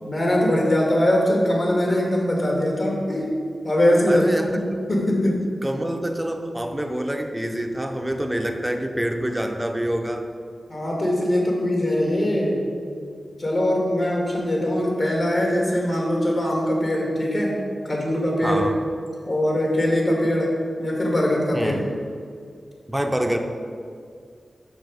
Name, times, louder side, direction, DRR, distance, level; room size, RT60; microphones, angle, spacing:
voice 1, 0.0-3.3 3.6-4.6 4.9-5.4 10.7-12.7 13.4-17.6 17.8-18.7 19.3-21.8, left 1 dB, 50° left, -2 dB, 2.0 m, -22 dB
voice 2, 4.1-4.6 5.2-5.3 5.6-10.3 18.4-18.7 21.5-21.9 22.9-23.4, right 1 dB, 10° right, 4 dB, 0.7 m, -26 dB
6.5 x 6.1 x 5.2 m, 2.2 s
wide cardioid pair, 75°, 0 cm